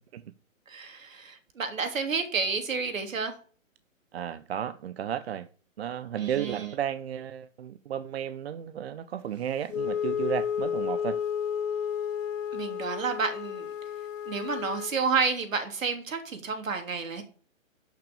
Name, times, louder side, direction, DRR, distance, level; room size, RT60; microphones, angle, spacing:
voice 1, 0.7-3.3 6.2-6.7 12.5-13.7 14.3-17.2, right 5 dB, 75° right, 3.3 m, -30 dB
voice 2, 4.1-5.5 5.8-11.2, right 9 dB, 50° right, 0.7 m, -33 dB
Wind instrument woodwind instrument, 9.7-15.0, left 8 dB, 70° left, 1.1 m, -32 dB
11.5 x 6.3 x 6.9 m
hypercardioid pair, 140°, 40 cm